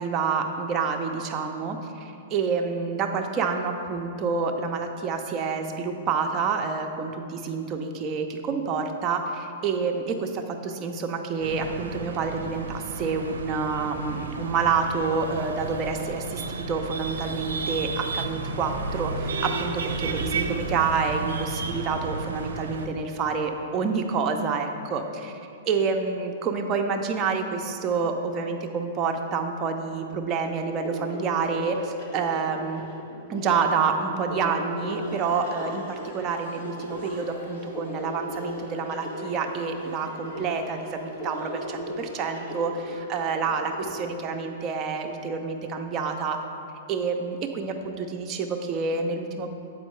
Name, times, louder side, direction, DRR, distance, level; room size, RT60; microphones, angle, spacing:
voice 1, 0.0-25.4 25.7-32.8 33.3-46.4 46.9-49.5, right 5 dB, 30° right, 3 dB, 0.6 m, -28 dB
sound 1, 11.4-22.9, right 3 dB, 85° right, 0.5 m, -32 dB
sound 2, 30.3-44.0, right 1 dB, 55° left, 1.3 m, -37 dB
sound 3, 34.7-43.5, left 1 dB, 85° left, 1.2 m, -48 dB
7.9 x 4.4 x 3.2 m, 2.6 s
hypercardioid pair, 120°, 0 cm